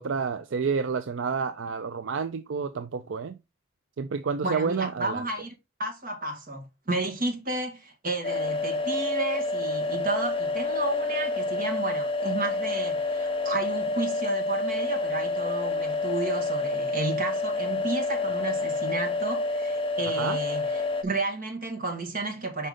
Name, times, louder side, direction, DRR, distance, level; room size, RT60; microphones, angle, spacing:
voice 1, 0.0-3.4 4.0-5.2 20.2-20.4, right 5 dB, 65° right, 0.4 m, -29 dB
voice 2, 4.4-5.5 5.8-22.7, right 2 dB, 45° right, 1.8 m, -32 dB
sound 1, 8.2-21.0, left 3 dB, 25° left, 0.7 m, -28 dB
5.4 x 5.1 x 3.8 m
head